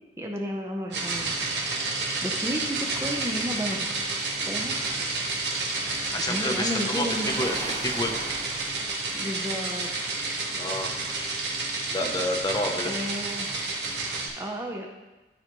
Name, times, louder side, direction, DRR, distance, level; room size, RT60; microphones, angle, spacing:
voice 1, 0.2-1.4 2.2-4.1 4.5-4.8 6.3-7.4 9.1-9.9 10.2-10.4 12.8-13.6 14.4-14.9, equal, 15° right, 1 dB, 0.7 m, -32 dB
sound 1, 0.9-14.3, right 3 dB, 70° right, 1.3 m, -30 dB
voice 2, 6.1-7.6 7.8-8.1 10.5-10.9 11.9-12.9, left 1 dB, 20° left, 2 dB, 0.7 m, -29 dB
Waves surf, 6.8-8.9, right 2 dB, 40° right, 1.0 m, -38 dB
12.5 x 4.8 x 3.1 m, 1.1 s
head